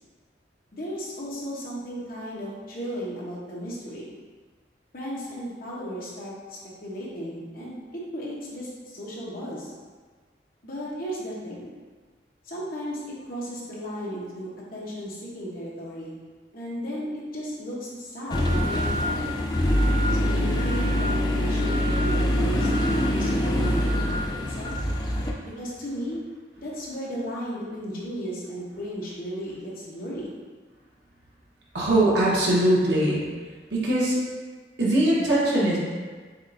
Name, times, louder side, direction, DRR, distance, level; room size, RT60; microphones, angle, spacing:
voice 1, 0.7-4.1 4.9-9.7 10.6-11.7 12.4-16.1 16.5-19.4 20.1-24.2 24.6-24.7 25.4-26.2 26.6-30.3, equal, 50° left, -6 dB, 1.0 m, -35 dB
sound 1, 18.3-25.3, left 1 dB, 25° left, 0.4 m, -24 dB
voice 2, 31.7-33.2 33.7-34.2 34.8-35.8, right 1 dB, 75° right, -6 dB, 1.2 m, -21 dB
7.2 x 2.5 x 2.6 m, 1.5 s
head